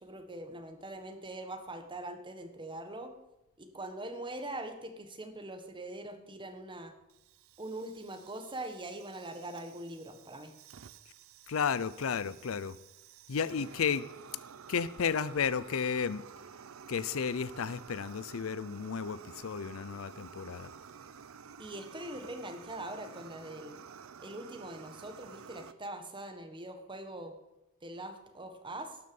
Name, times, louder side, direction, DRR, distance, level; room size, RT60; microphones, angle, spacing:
voice 1, 0.0-3.1 3.6-6.9 7.6-10.5 21.6-23.8 24.2-27.3 27.8-29.0, right 1 dB, 25° right, 6 dB, 1.4 m, -42 dB
Fire, 7.1-25.7, right 6 dB, 80° right, 0.6 m, -52 dB
voice 2, 11.5-12.8 13.3-14.1 14.7-16.2 16.9-20.7, left 6 dB, 75° left, 17 dB, 0.5 m, -33 dB
12.0 x 6.6 x 7.1 m, 0.97 s
head